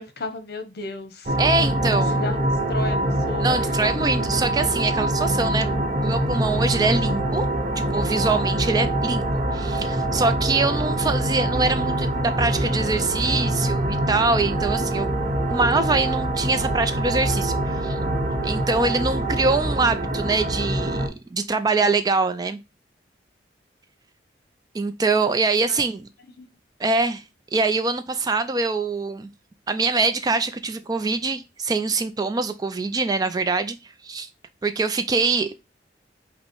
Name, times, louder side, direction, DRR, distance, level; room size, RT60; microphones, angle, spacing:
voice 1, 0.0-1.3 1.8-2.4 2.7-3.8 25.7-25.8 26.4-26.5, left 3 dB, 55° left, 0.9 m, -34 dB
sound 1, 1.3-21.1, right 1 dB, 40° right, 0.8 m, -24 dB
voice 2, 1.4-2.2 3.4-5.7 6.0-7.5 7.8-15.1 15.5-18.0 18.4-22.6 24.7-26.1 26.8-27.2 27.5-29.3 29.7-33.8 34.0-34.3 34.6-35.7, right 3 dB, 20° right, 0.3 m, -24 dB
5.4 x 2.1 x 4.4 m
head